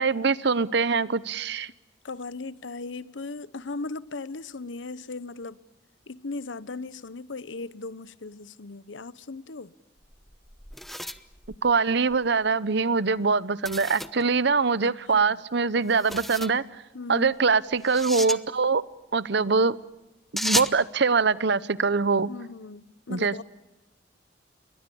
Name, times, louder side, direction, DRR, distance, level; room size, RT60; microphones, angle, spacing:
voice 1, 0.0-1.7 11.6-16.6 17.1-18.8 19.1-19.8 20.3-22.3 23.1-23.4, right 4 dB, 65° right, 0.9 m, -23 dB
voice 2, 2.0-5.6 6.1-9.7 14.8-15.4 16.9-17.3 22.3-23.4, left 3 dB, 90° left, 0.9 m, -38 dB
sound 1, 10.0-12.2 13.6-14.2 15.9-16.6 17.8-18.4 20.4-20.8, equal, ahead, 0.9 m, -33 dB
29.5 x 23.0 x 7.0 m
head